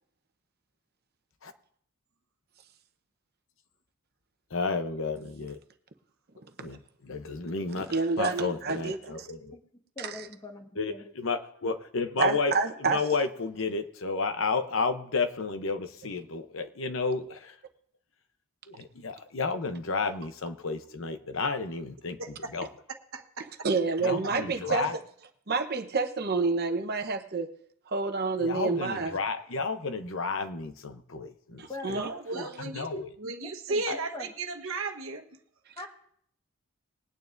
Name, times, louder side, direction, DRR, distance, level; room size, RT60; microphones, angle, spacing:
voice 1, 4.5-5.6 6.6-6.8 7.1-7.9 8.2-9.5 10.8-12.5 12.8-17.5 18.7-22.2 22.5-22.7 24.0-24.9 28.4-31.6 31.9-32.0 32.7-33.1 33.9-34.0, left 4 dB, 65° left, 0.8 m, -31 dB
voice 2, 7.8-9.3 10.0-10.3 12.2-13.0 23.4-25.0 25.5-27.5 27.9-29.2 31.6-32.5 35.7-35.8, right 4 dB, 50° right, 0.9 m, -29 dB
voice 3, 9.5-11.0 31.7-32.5 33.2-33.8 34.1-34.3 35.8-35.9, left 2 dB, 20° left, 1.4 m, -43 dB
voice 4, 23.1-23.4 31.9-32.9 33.2-35.3, right 3 dB, 70° right, 1.2 m, -34 dB
21.0 x 9.4 x 2.6 m
head